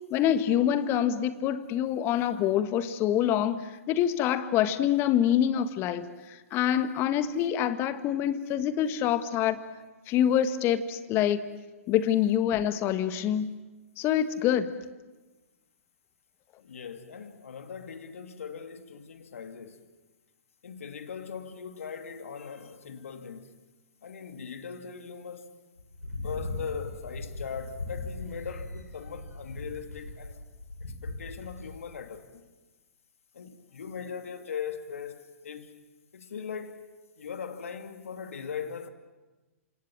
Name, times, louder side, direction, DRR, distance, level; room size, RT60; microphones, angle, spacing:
voice 1, 0.1-9.6 10.1-11.5 11.9-13.5 14.0-14.7, left 10 dB, 30° left, 1.5 m, -26 dB
voice 2, 16.6-19.8 20.6-23.5 24.0-25.5 26.0-30.4 30.8-32.5 33.3-35.7 36.1-36.8 37.2-38.9, left 6 dB, 65° left, 2.5 m, -40 dB
sound 1, 25.8-31.8, left 2 dB, 85° left, 6.8 m, -39 dB
28.0 x 26.5 x 7.6 m
figure-of-eight pair, 115°, 8 cm